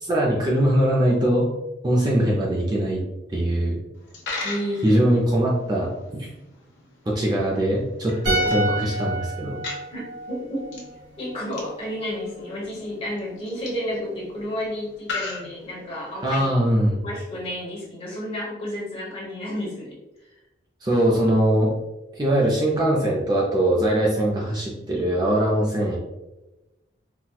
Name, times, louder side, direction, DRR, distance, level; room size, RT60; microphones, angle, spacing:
voice 1, 0.0-1.5 1.8-3.0 3.3-3.8 4.8-6.3 7.1-9.6 16.2-17.0 20.8-21.7 22.1-26.0, right 1 dB, 20° right, -3 dB, 0.4 m, -21 dB
Coin (dropping), 3.9-16.2, left 3 dB, 80° left, 0.8 m, -40 dB
voice 2, 4.4-4.8 8.4-8.7 9.9-10.8 11.2-16.5 17.0-20.4, equal, 30° left, -5 dB, 1.0 m, -31 dB
sound 1, 8.3-11.5 11.7-11.9, right 1 dB, 70° right, 1.4 m, -29 dB
4.1 x 2.1 x 2.2 m, 1.0 s
head